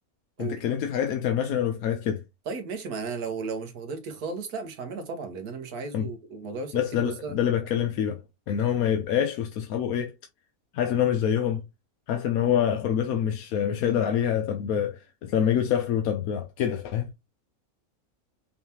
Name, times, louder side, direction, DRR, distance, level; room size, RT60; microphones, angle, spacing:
voice 1, 0.4-2.2 5.9-6.1 6.7-8.2 8.5-10.1 10.7-11.6 12.1-17.1, left 9 dB, 75° left, 1.1 m, -26 dB
voice 2, 2.5-7.4, right 4 dB, 80° right, 1.6 m, -35 dB
5.5 x 3.5 x 2.8 m
omnidirectional pair, 1.6 m